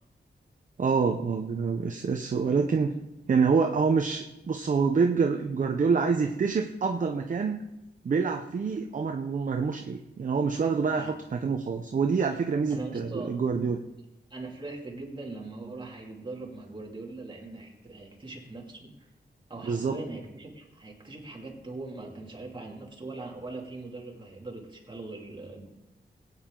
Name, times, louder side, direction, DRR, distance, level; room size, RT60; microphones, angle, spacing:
voice 1, 0.8-3.0 3.3-7.6 8.0-13.8 19.6-20.0, right 5 dB, 45° right, 4 dB, 0.7 m, -26 dB
voice 2, 12.7-13.4 14.3-19.1 19.5-25.7, right 2 dB, 25° right, -2 dB, 2.5 m, -41 dB
20.5 x 9.1 x 3.8 m, 0.96 s
wide cardioid pair, 175°, 18 cm